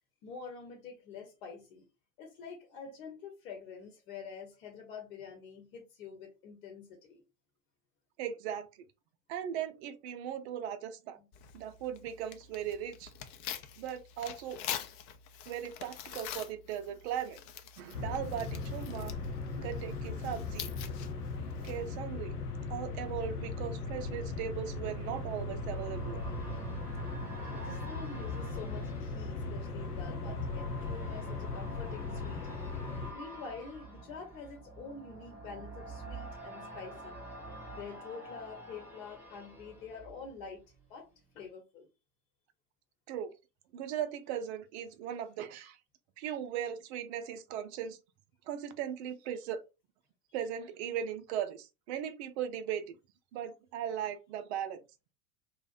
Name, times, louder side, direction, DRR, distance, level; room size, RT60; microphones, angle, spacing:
voice 1, 0.2-1.9 2.2-7.2 11.2-11.3 21.6-21.7 27.4-32.4 32.9-37.2 37.7-40.6 40.9-41.1 41.3-41.9, left 5 dB, 65° left, 0.9 m, -47 dB
voice 2, 8.2-8.7 9.3-11.2 11.5-13.1 13.8-14.6 15.5-17.4 17.8-19.1 19.6-20.7 21.6-22.4 22.7-26.2 43.1-43.3 43.7-45.8 46.2-48.0 48.5-49.6 50.3-52.9 53.3-54.8, right 9 dB, 50° right, 0.5 m, -38 dB
Tearing, 11.3-22.0, left 10 dB, 40° left, 0.4 m, -45 dB
sound 1, 17.9-33.1, left 3 dB, 85° left, 0.6 m, -38 dB
sound 2, 23.3-40.8 41.2-41.3, right 1 dB, 5° right, 0.8 m, -48 dB
2.6 x 2.1 x 2.4 m
figure-of-eight pair, 85°, 45 cm